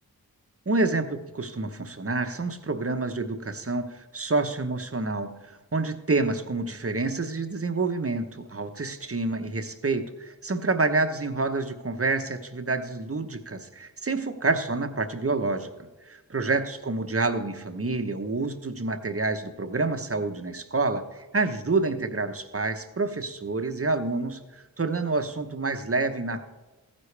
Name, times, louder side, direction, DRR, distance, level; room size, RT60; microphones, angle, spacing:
voice 1, 0.7-5.4 5.7-15.7 16.1-26.4, right 3 dB, 40° right, 8 dB, 1.0 m, -28 dB
15.0 x 9.7 x 3.4 m, 1.2 s
wide cardioid pair, 50°, 37 cm